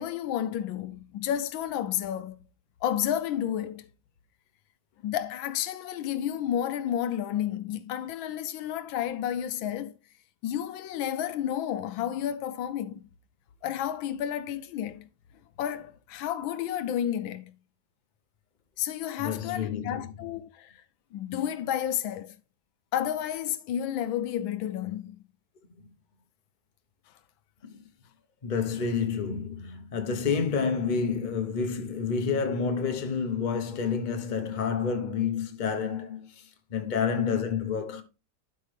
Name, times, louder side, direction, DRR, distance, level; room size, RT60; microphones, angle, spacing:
voice 1, 0.0-2.4 2.8-3.9 5.0-10.0 10.4-13.0 13.6-15.1 15.6-17.5 18.8-20.8 21.1-22.4 22.9-25.2, left 10 dB, 85° left, 1.5 m, -31 dB
voice 2, 19.2-20.1 25.8-25.9 27.6-27.8 28.4-38.0, left 6 dB, 30° left, 1.0 m, -29 dB
12.0 x 5.5 x 3.4 m
omnidirectional pair, 2.1 m